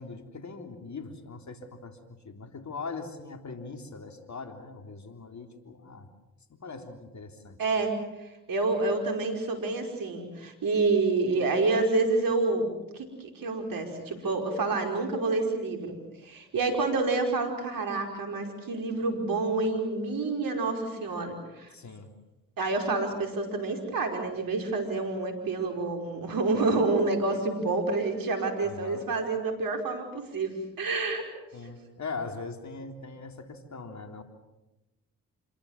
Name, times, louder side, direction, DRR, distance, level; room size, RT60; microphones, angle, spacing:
voice 1, 0.0-2.0 2.2-6.1 6.5-7.6 21.7-22.1 28.6-29.0 31.5-34.2, left 4 dB, 50° left, 6 dB, 3.6 m, -41 dB
voice 2, 7.6-21.7 22.6-31.3, right 3 dB, 65° right, 4 dB, 5.2 m, -28 dB
27.0 x 22.5 x 7.4 m, 0.99 s
hypercardioid pair, 45°, 37 cm